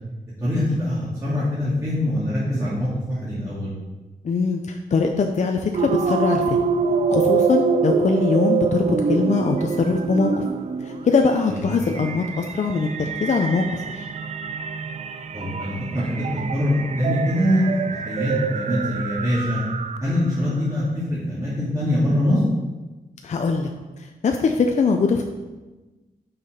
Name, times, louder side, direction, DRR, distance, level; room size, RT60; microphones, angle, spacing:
voice 1, 0.4-3.7 11.5-11.6 15.3-16.3 16.5-17.6 17.9-19.6 20.0-22.4, left 1 dB, 20° right, -10 dB, 2.4 m, -23 dB
voice 2, 4.2-6.6 7.1-10.5 10.8-14.1 23.2-23.7 24.0-25.2, left 4 dB, 50° left, 3 dB, 0.6 m, -22 dB
sound 1, 5.7-20.3, right 5 dB, 45° right, 0.5 m, -26 dB
6.8 x 5.8 x 5.2 m, 1.2 s
wide cardioid pair, 125°, 15 cm